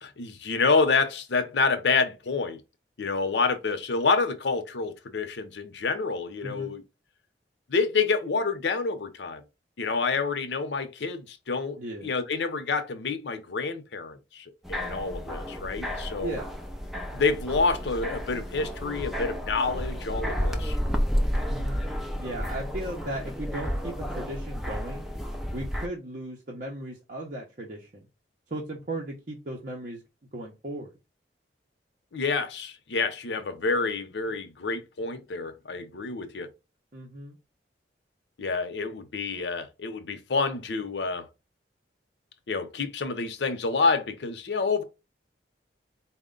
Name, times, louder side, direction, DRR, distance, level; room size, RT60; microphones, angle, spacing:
voice 1, 0.0-2.6 3.0-6.8 7.7-9.4 9.8-16.4 17.1-20.8 32.1-36.5 38.4-41.3 42.5-44.8, left 4 dB, 75° left, 0.6 m, -28 dB
voice 2, 6.4-6.8 11.8-12.1 16.2-16.5 21.5-21.8 22.1-25.1 25.5-28.1 28.5-30.0 30.3-30.9 36.9-37.4, right 1 dB, 50° right, 0.7 m, -36 dB
sound 1, 14.6-25.9, equal, ahead, 0.4 m, -31 dB
4.3 x 2.1 x 3.7 m
head